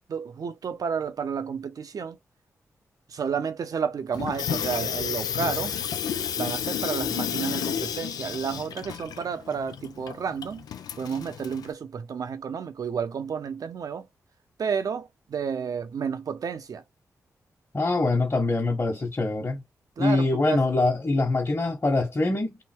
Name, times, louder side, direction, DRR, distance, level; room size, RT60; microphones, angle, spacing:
voice 1, 0.1-2.2 3.1-5.7 6.4-10.7 11.0-14.1 14.6-16.8 20.0-20.6, right 6 dB, 70° right, 0.8 m, -31 dB
Water tap faucet / Sink (filling or washing), 4.1-11.7, left 8 dB, 90° left, 0.5 m, -31 dB
voice 2, 17.7-19.6 20.0-22.6, left 2 dB, 35° left, 1.4 m, -24 dB
3.6 x 2.7 x 4.5 m
cardioid pair, 60°, 6 cm